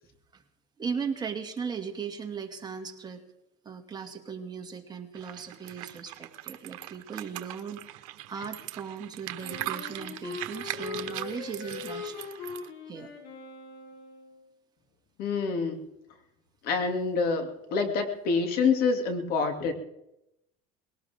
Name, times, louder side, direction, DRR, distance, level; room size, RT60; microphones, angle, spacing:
voice 1, 0.8-3.2 3.6-7.9 8.3-12.3 12.9-13.1, right 6 dB, 25° right, 3 dB, 2.4 m, -37 dB
sound 1, 5.1-12.7, right 16 dB, 80° right, 1.2 m, -40 dB
Wind instrument woodwind instrument, 9.4-14.4, left 5 dB, 80° left, 6.0 m, -41 dB
voice 2, 15.2-15.8 16.6-19.7, left 4 dB, 60° left, 5 dB, 2.7 m, -27 dB
21.0 x 17.5 x 3.7 m, 0.84 s
supercardioid pair, 110°, 17 cm